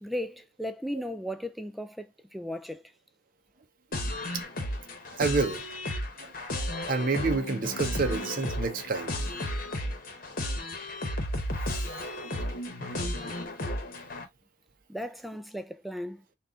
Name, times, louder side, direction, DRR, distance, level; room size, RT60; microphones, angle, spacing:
voice 1, 0.0-2.8 14.9-16.2, equal, ahead, 0.3 m, -36 dB
sound 1, 3.9-14.2, left 1 dB, 50° left, 1.0 m, -33 dB
voice 2, 5.1-5.6 6.2-9.1, right 4 dB, 50° right, 0.7 m, -29 dB
4.0 x 2.4 x 3.6 m
head